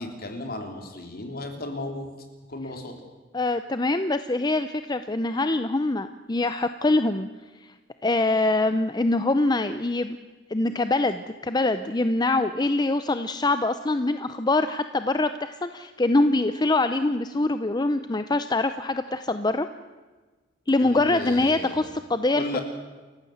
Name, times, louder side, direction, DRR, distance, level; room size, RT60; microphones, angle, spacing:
voice 1, 0.0-2.1 2.5-2.9 20.8-21.8 22.3-22.6, left 1 dB, 50° left, 4 dB, 3.5 m, -34 dB
voice 2, 3.3-7.3 8.0-10.2 10.5-19.7 20.7-22.6, left 2 dB, 20° left, 10 dB, 0.6 m, -24 dB
29.0 x 15.0 x 8.0 m, 1.3 s
head